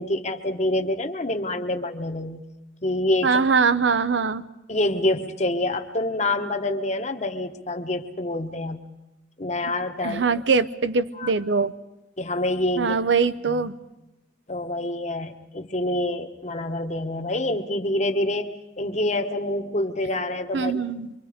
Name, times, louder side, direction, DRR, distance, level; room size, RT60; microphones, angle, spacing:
voice 1, 0.0-2.4 2.8-3.4 4.7-8.8 9.4-10.2 11.2-11.3 12.2-13.0 13.5-13.7 14.5-20.8, left 1 dB, 40° left, 6 dB, 1.1 m, -26 dB
voice 2, 3.2-4.4 10.0-11.7 12.8-13.7 20.5-21.1, right 5 dB, 80° right, 13 dB, 0.7 m, -22 dB
25.0 x 24.0 x 5.1 m, 0.97 s
head